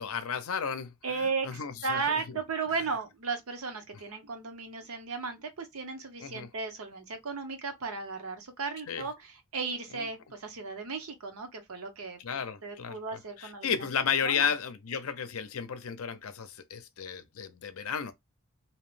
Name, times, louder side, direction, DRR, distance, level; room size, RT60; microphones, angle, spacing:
voice 1, 0.0-0.9 1.2-2.0 6.2-6.5 8.9-9.0 9.9-10.0 12.2-13.0 13.4-18.1, left 7 dB, 70° left, 0.5 m, -33 dB
voice 2, 1.0-13.7 14.2-14.5, right 4 dB, 75° right, 0.8 m, -35 dB
2.8 x 2.0 x 3.1 m
head